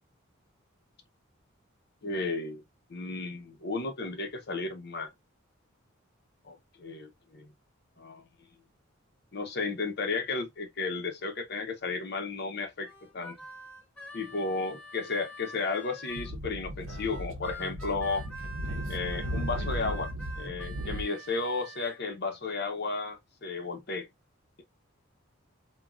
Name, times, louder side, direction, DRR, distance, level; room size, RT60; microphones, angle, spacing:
voice 1, 2.0-2.6 2.9-5.1 6.4-7.5 8.0-8.2 9.3-13.4 14.1-18.2 18.9-20.1 20.4-24.1, left 3 dB, 55° left, 0.8 m, -33 dB
Harmonica, 12.8-16.3 16.9-22.0, right 1 dB, 5° left, 1.0 m, -46 dB
Speech / Wind, 16.1-21.0, equal, 70° right, 0.7 m, -36 dB
3.5 x 2.3 x 2.3 m
head